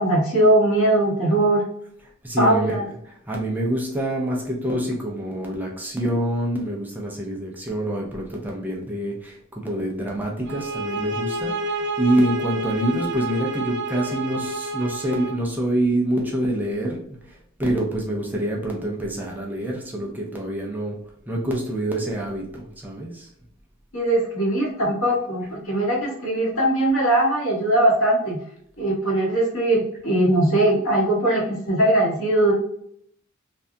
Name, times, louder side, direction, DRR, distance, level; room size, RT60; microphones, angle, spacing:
voice 1, 0.0-1.6 2.4-2.8 23.9-28.4 28.8-32.5, right 1 dB, 70° left, -3 dB, 1.3 m, -20 dB
voice 2, 2.2-2.8 3.1-21.0 21.3-23.3, right 1 dB, 10° right, -2 dB, 0.6 m, -26 dB
sound 1, 10.4-15.4, right 2 dB, 55° right, 0.5 m, -29 dB
3.3 x 2.3 x 2.6 m, 0.69 s
head